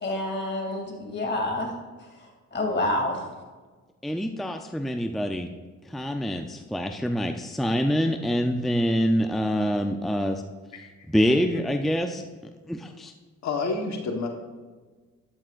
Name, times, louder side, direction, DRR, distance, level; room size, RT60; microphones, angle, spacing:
voice 1, 0.0-1.7 2.5-3.3, left 1 dB, 35° left, 0 dB, 2.6 m, -28 dB
voice 2, 4.0-5.5 5.9-10.4 11.1-12.2 12.7-13.1, equal, ahead, 5 dB, 0.5 m, -25 dB
voice 3, 10.8-11.6 13.4-14.3, left 3 dB, 70° left, 3 dB, 1.3 m, -31 dB
12.5 x 11.5 x 2.5 m, 1.4 s
cardioid pair, 95°, 30 cm